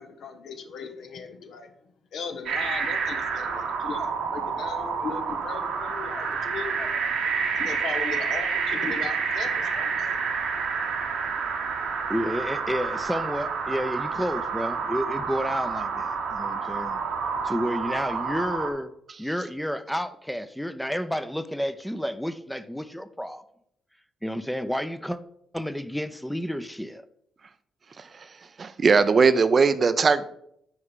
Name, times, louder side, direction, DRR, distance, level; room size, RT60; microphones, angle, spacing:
voice 1, 0.0-1.7 2.1-7.0 7.5-10.2, left 5 dB, 65° left, 0.8 m, -38 dB
sound 1, 2.5-18.7, right 5 dB, 70° right, 1.0 m, -29 dB
voice 2, 12.1-17.0 17.4-18.9 19.2-23.4 24.2-25.2 25.5-27.1, equal, 5° left, 0.6 m, -30 dB
voice 3, 28.6-30.3, right 5 dB, 45° right, 0.5 m, -19 dB
6.4 x 4.7 x 5.5 m
hypercardioid pair, 40°, 0 cm